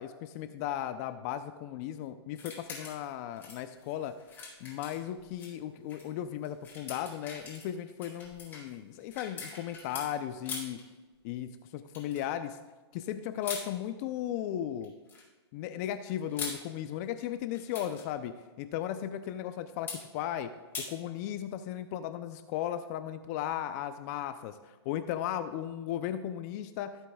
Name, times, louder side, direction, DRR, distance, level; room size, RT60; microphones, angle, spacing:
voice 1, 0.0-4.2 4.6-10.8 11.2-12.6 12.9-14.9 15.5-19.9 20.1-20.5 20.8-26.9, left 11 dB, 35° left, 10 dB, 0.6 m, -36 dB
sound 1, 2.3-3.1 3.4-5.5 5.9-6.0 6.4-10.1 10.4-10.8 11.9-12.3 13.4-13.7 14.8-15.3 16.1-16.6 17.5-18.0 19.9-20.0 20.7-20.9, left 4 dB, 15° left, 3.0 m, -42 dB
16.0 x 8.2 x 2.4 m, 1.2 s
hypercardioid pair, 130°, 14 cm